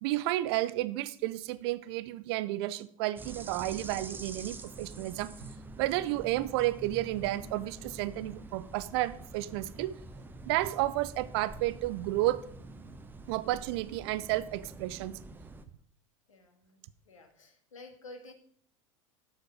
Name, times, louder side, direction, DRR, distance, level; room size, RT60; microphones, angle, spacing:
voice 1, 0.0-5.5 5.8-10.0 10.4-12.4 13.3-15.2, right 16 dB, 50° right, 0.5 m, -32 dB
sound 1, 3.2-15.6, right 2 dB, 10° right, 0.7 m, -46 dB
voice 2, 16.3-16.8 17.0-18.3, left 2 dB, 75° left, 1.6 m, -51 dB
7.8 x 6.6 x 4.9 m
figure-of-eight pair, 80°, 17 cm